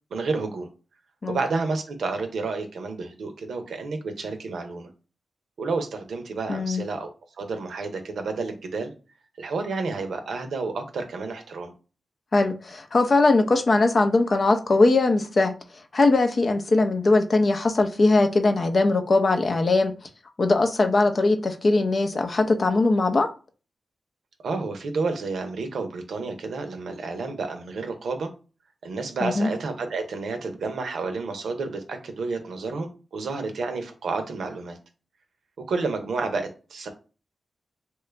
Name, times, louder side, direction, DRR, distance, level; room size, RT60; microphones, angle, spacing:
voice 1, 0.1-0.7 1.3-4.9 5.6-7.1 7.4-8.9 9.4-11.7 24.4-28.3 28.8-34.8 35.7-36.9, right 3 dB, 80° right, 0.6 m, -30 dB
voice 2, 6.5-6.8 12.3-15.5 15.9-19.9 20.4-23.3 29.2-29.5, left 3 dB, 55° left, 0.6 m, -20 dB
2.9 x 2.3 x 3.3 m
supercardioid pair, 40°, 0 cm